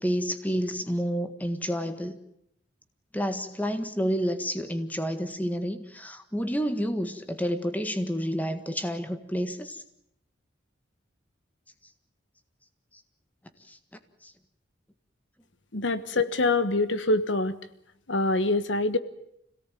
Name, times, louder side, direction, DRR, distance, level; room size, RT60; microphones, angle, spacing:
voice 1, 0.0-2.2 3.1-9.8 13.7-13.8 14.2-14.3, equal, 10° left, 9 dB, 1.7 m, -29 dB
voice 2, 15.7-17.6 18.1-19.0, left 2 dB, 75° left, 12 dB, 1.4 m, -25 dB
26.5 x 17.5 x 9.2 m, 0.76 s
head